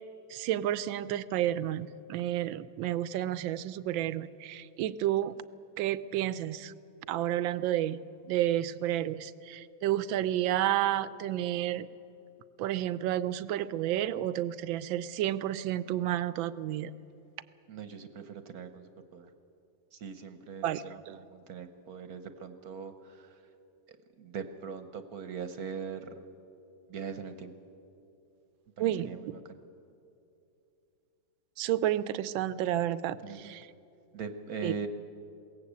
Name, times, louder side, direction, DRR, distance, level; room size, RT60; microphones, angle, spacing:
voice 1, 0.3-5.3 5.8-6.7 7.1-8.0 8.3-11.9 12.6-16.9 20.6-21.2 28.8-29.1 31.6-33.7 34.6-34.7, right 12 dB, 80° right, 15 dB, 1.4 m, -31 dB
voice 2, 17.7-19.3 19.9-23.4 24.2-26.2 26.9-27.5 28.8-29.6 33.2-33.6 34.1-34.9, right 6 dB, 55° right, 9 dB, 1.3 m, -41 dB
21.5 x 17.5 x 8.3 m, 2.7 s
omnidirectional pair, 2.1 m